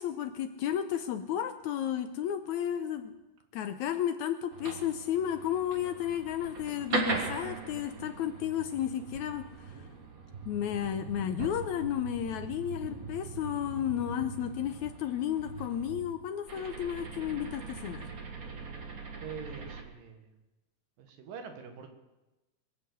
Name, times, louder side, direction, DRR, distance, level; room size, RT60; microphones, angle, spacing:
voice 1, 0.0-3.1 3.5-9.8 10.4-18.1, left 10 dB, 75° left, 9 dB, 1.8 m, -33 dB
sound 1, 4.5-19.8, right 4 dB, 40° right, 1.2 m, -40 dB
voice 2, 19.2-20.3 21.0-21.9, right 6 dB, 80° right, 5 dB, 3.3 m, -44 dB
22.0 x 8.0 x 7.9 m, 1.0 s
omnidirectional pair, 3.9 m